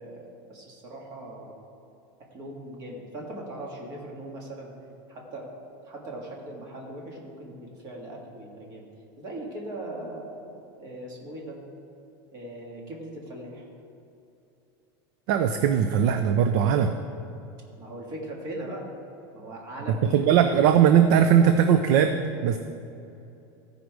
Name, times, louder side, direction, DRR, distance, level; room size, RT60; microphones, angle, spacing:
voice 1, 0.0-1.6 2.2-4.7 5.1-5.5 5.8-8.9 9.2-11.6 12.3-13.7 17.8-18.9 19.3-20.2, right 1 dB, 30° right, -1 dB, 1.7 m, -39 dB
voice 2, 15.3-16.9 20.1-22.2 22.4-22.6, right 8 dB, 50° right, 8 dB, 0.4 m, -19 dB
14.5 x 5.2 x 4.7 m, 2.8 s
supercardioid pair, 175°, 12 cm